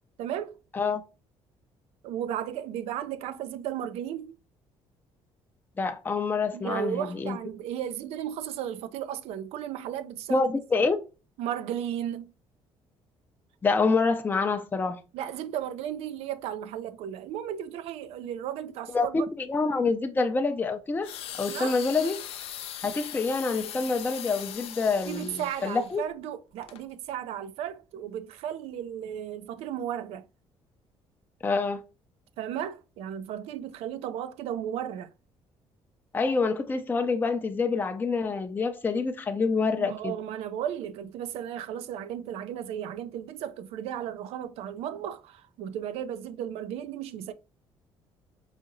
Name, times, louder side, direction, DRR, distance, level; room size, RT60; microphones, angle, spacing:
voice 1, 0.2-0.6 2.0-4.3 6.5-10.5 11.4-12.3 15.1-19.3 21.5-21.8 25.1-30.2 32.4-35.1 39.8-47.3, right 10 dB, 85° right, 0.4 m, -35 dB
voice 2, 5.8-7.4 10.3-11.0 13.6-15.0 18.9-21.1 21.4-22.2 22.8-26.0 31.4-31.8 36.1-40.1, left 4 dB, 20° left, 0.4 m, -27 dB
sound 1, 21.0-26.0 26.6-26.8, left 10 dB, 75° left, 0.5 m, -40 dB
4.9 x 2.7 x 2.5 m
cardioid pair, 115°, 10 cm